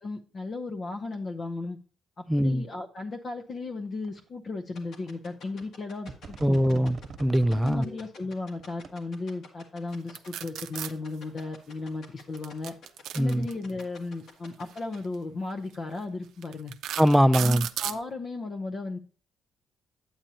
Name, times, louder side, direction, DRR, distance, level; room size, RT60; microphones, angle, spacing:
voice 1, 0.0-1.8 2.2-6.9 7.5-12.7 13.1-16.7 17.4-19.0, left 3 dB, 45° left, 0.7 m, -35 dB
voice 2, 2.3-2.7 6.4-7.9 13.2-13.5 17.0-17.7, equal, 5° right, 0.4 m, -22 dB
sound 1, 4.0-4.1 5.1-5.2 5.6-5.8 6.1-7.8 8.6-8.9, right 4 dB, 50° right, 1.1 m, -42 dB
sound 2, 4.8-15.0, left 4 dB, 70° left, 1.9 m, -48 dB
sound 3, 10.2-10.9 12.4-13.8 15.0-15.2 15.7-15.8 16.4-18.0, right 11 dB, 80° right, 0.5 m, -34 dB
8.8 x 8.7 x 2.8 m
cardioid pair, 90°, 0 cm